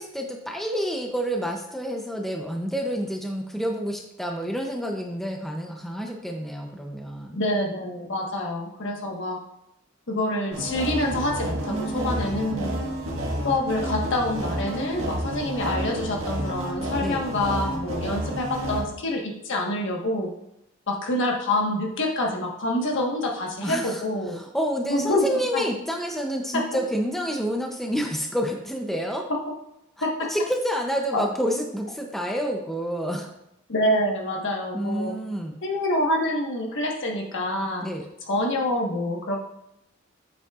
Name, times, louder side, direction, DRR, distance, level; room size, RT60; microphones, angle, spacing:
voice 1, 0.0-7.4 11.7-12.1 17.0-17.2 23.6-24.0 24.3-29.2 30.3-33.3 34.7-35.5 37.8-38.0, equal, ahead, 1 dB, 0.6 m, -28 dB
voice 2, 7.3-9.4 10.1-12.8 13.4-20.3 20.9-24.4 24.9-25.6 30.0-30.3 31.1-31.3 33.7-35.1 35.6-37.9 38.3-39.4, left 1 dB, 65° left, 0 dB, 1.3 m, -26 dB
sound 1, 10.5-18.8, right 1 dB, 80° right, 1.5 m, -30 dB
8.2 x 7.3 x 2.4 m, 0.81 s
head